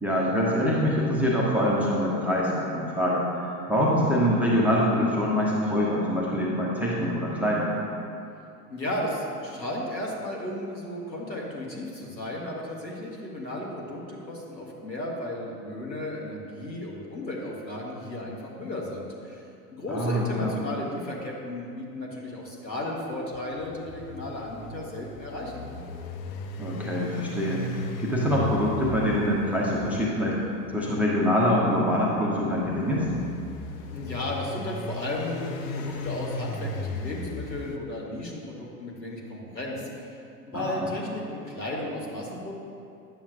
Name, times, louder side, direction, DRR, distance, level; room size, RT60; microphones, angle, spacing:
voice 1, 0.0-7.7 19.9-20.5 26.6-30.4 30.7-33.1 40.5-40.9, equal, 5° right, -6 dB, 0.4 m, -25 dB
voice 2, 8.7-19.4 19.7-25.9 33.9-40.2 40.4-42.5, left 1 dB, 85° left, -3 dB, 1.4 m, -34 dB
sound 1, 23.3-37.8, left 2 dB, 55° left, 0.7 m, -37 dB
9.6 x 7.1 x 2.6 m, 2.6 s
figure-of-eight pair, 85°, 50 cm